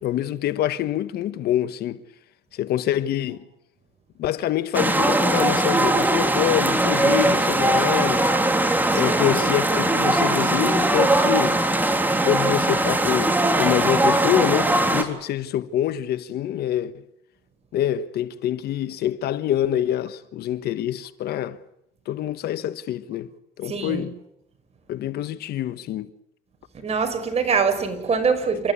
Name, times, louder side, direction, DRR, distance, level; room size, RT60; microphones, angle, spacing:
voice 1, 0.0-2.0 2.5-3.4 4.2-8.4 8.9-11.6 12.2-16.9 17.7-21.6 22.1-23.3 23.6-24.2 24.9-26.1, left 11 dB, 70° left, 1.3 m, -26 dB
sound 1, 4.7-15.0, right 1 dB, 10° right, 3.2 m, -20 dB
voice 2, 8.9-9.2 23.7-24.0 26.7-28.7, right 5 dB, 40° right, 5.8 m, -24 dB
30.0 x 14.5 x 9.8 m
cardioid pair, 110°, 17 cm